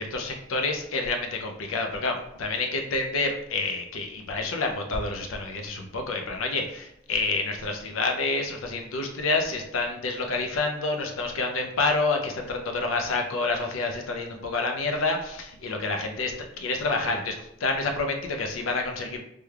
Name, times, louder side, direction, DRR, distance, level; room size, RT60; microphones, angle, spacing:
voice 1, 0.0-17.4 17.6-19.2, left 3 dB, 80° left, 3 dB, 0.5 m, -28 dB
3.4 x 2.2 x 3.2 m, 0.79 s
head